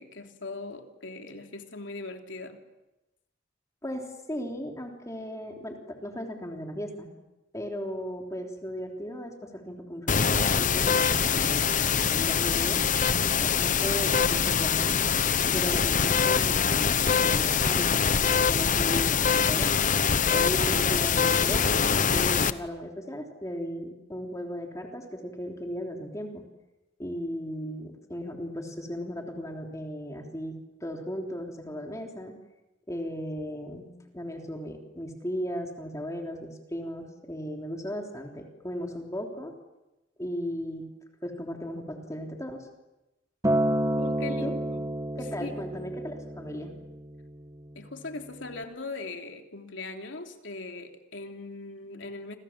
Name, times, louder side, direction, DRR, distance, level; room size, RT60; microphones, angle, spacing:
voice 1, 0.0-2.6 43.9-44.9 45.4-45.5 47.7-52.4, left 3 dB, 80° left, 4 dB, 3.2 m, -40 dB
voice 2, 3.8-7.1 7.5-12.8 13.4-15.0 15.5-19.7 20.3-26.4 27.0-32.4 32.9-39.5 40.2-40.9 41.2-42.7 44.4-44.5 45.2-46.7, equal, 15° left, 2 dB, 3.4 m, -36 dB
sound 1, 10.1-22.5, left 6 dB, 45° left, 1.0 m, -24 dB
Acoustic guitar, 43.4-47.7 48.6-48.7, right 1 dB, 20° right, 1.7 m, -30 dB
29.5 x 26.5 x 7.5 m, 1.0 s
head